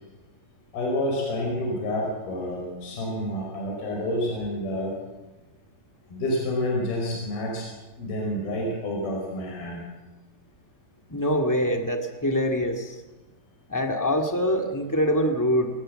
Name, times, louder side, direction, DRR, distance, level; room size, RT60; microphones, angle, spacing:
voice 1, 0.7-5.0 6.1-7.7 8.0-9.8, left 1 dB, 65° left, -1 dB, 6.9 m, -28 dB
voice 2, 11.1-12.9 13.7-15.7, equal, 20° left, 4 dB, 0.5 m, -24 dB
27.5 x 19.5 x 7.8 m, 1.1 s
omnidirectional pair, 4.7 m